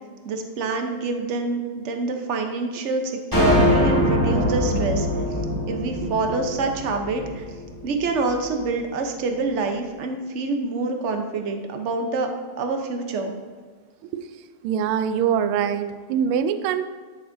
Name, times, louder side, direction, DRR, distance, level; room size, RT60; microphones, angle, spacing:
voice 1, 0.2-5.1 5.7-7.5 7.8-12.3 12.6-13.3, right 3 dB, 60° right, 4 dB, 0.7 m, -26 dB
sound 1, 3.3-7.7, equal, 10° left, 1.4 m, -22 dB
voice 2, 14.6-16.8, right 8 dB, 80° right, 10 dB, 1.4 m, -23 dB
13.0 x 6.9 x 2.7 m, 1.5 s
omnidirectional pair, 2.4 m